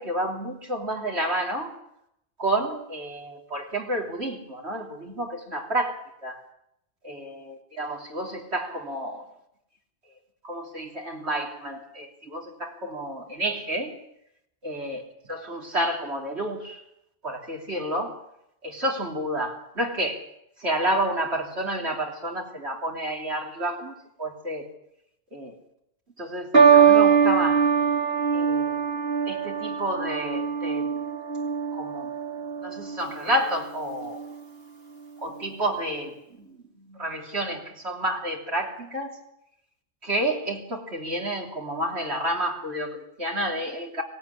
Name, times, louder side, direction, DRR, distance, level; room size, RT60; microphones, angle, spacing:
voice 1, 0.0-1.7 2.4-6.4 7.0-9.3 10.4-13.9 14.6-15.0 15.3-16.8 17.2-18.2 18.6-20.3 20.6-23.9 24.2-24.7 25.3-25.5 26.2-27.7 28.3-28.8 29.3-31.0 31.7-32.1 32.6-34.2 35.2-39.2 40.0-44.0, right 1 dB, 80° right, 0 dB, 3.7 m, -30 dB
sound 1, 26.5-33.1 33.9-34.3, right 7 dB, 65° right, 2.6 m, -22 dB
25.5 x 17.0 x 10.0 m, 0.81 s
omnidirectional pair, 1.1 m